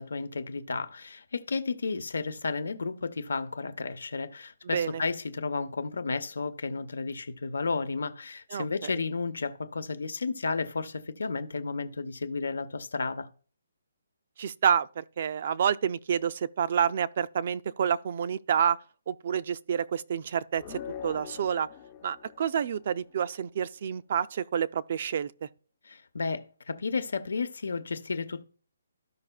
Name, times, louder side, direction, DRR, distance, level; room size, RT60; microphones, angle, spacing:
voice 1, 0.0-13.3 25.8-28.4, left 4 dB, 85° left, 1.0 m, -32 dB
voice 2, 14.4-18.8 19.1-21.7 22.0-25.3, right 8 dB, 35° right, 0.3 m, -28 dB
sound 1, 20.6-23.3, left 8 dB, 20° left, 0.5 m, -43 dB
13.5 x 5.5 x 2.3 m
hypercardioid pair, 175°, 0 cm